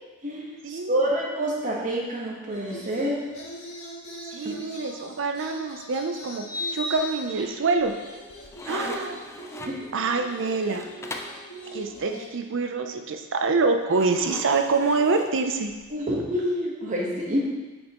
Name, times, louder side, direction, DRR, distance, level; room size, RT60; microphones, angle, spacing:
voice 1, 0.2-3.2 4.4-4.5 9.6-9.9 15.9-17.4, equal, 35° right, -3 dB, 1.3 m, -27 dB
sound 1, 2.5-7.4 7.8-12.3, equal, 70° left, 1.8 m, -42 dB
voice 2, 4.3-6.5 6.7-7.9 8.6-9.2 9.9-10.9 11.7-15.7, right 4 dB, 60° right, 5 dB, 0.6 m, -25 dB
sound 2, 4.8-4.9 6.4-7.9, left 1 dB, 5° right, 1.5 m, -34 dB
sound 3, 6.8-7.4 7.8-11.5 13.9-16.0, left 2 dB, 10° left, 0.4 m, -40 dB
8.8 x 5.4 x 3.0 m, 1.2 s
head